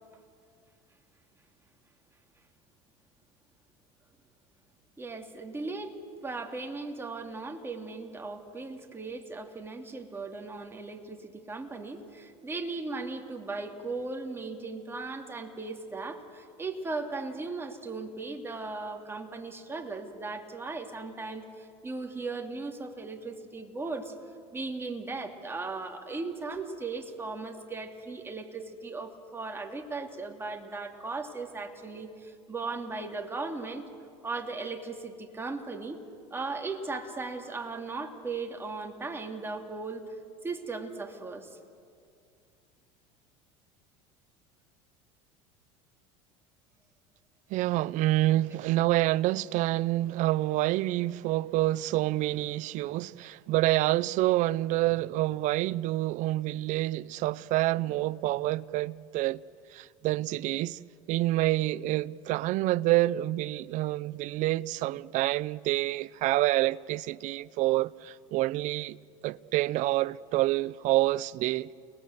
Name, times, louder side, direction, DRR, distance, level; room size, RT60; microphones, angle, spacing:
voice 1, 5.0-6.0 6.2-24.1 24.5-33.9 34.2-36.0 36.3-40.2 40.4-41.5 48.5-48.6, right 3 dB, 15° right, 2.7 m, -37 dB
voice 2, 47.5-59.4 59.7-60.8 61.1-69.0 69.2-71.7, right 16 dB, 55° right, 0.6 m, -27 dB
30.0 x 19.5 x 8.0 m
supercardioid pair, 100°, 15 cm